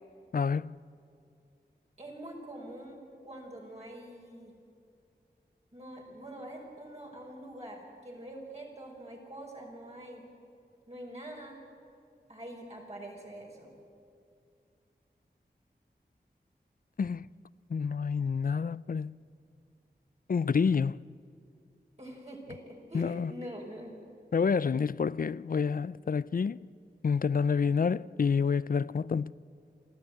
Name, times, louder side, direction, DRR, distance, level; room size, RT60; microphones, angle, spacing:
voice 1, 0.3-0.8 17.0-17.3 17.7-19.2 20.3-21.0 22.9-23.3 24.3-26.6 27.0-29.3, left 5 dB, 50° left, 0.4 m, -28 dB
voice 2, 2.0-4.5 5.7-10.2 10.9-11.6 12.3-13.7 22.0-23.9, right 1 dB, 35° right, 5.6 m, -45 dB
29.0 x 13.0 x 9.2 m
cardioid pair, 40°, 18 cm